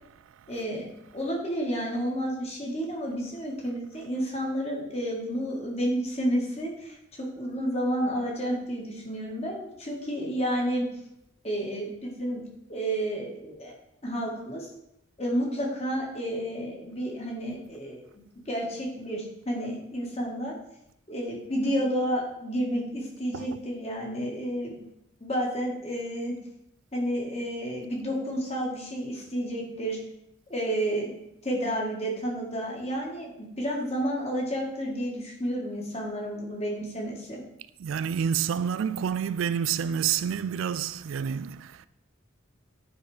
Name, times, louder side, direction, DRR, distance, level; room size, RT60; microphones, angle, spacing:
voice 1, 0.5-10.9 11.4-12.4 12.7-13.7 14.0-14.7 15.2-18.1 18.5-20.5 21.1-24.8 25.2-26.4 26.9-30.0 30.5-31.1 31.4-37.4, equal, 30° left, 1.8 m, -31 dB
voice 2, 37.8-41.9, right 8 dB, 75° right, 0.3 m, -29 dB
9.1 x 4.2 x 4.9 m
head